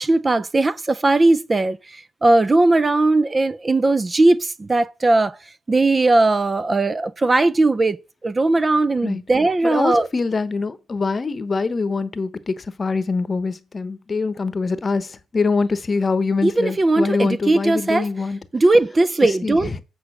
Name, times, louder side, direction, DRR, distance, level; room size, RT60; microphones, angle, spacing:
voice 1, 0.0-5.4 5.7-10.1 16.4-18.1 18.5-19.7, right 2 dB, 25° right, 0.5 m, -18 dB
voice 2, 9.6-18.4 19.2-19.8, left 4 dB, 30° left, 1.0 m, -24 dB
8.4 x 4.9 x 6.4 m
cardioid pair, 90°, 0 cm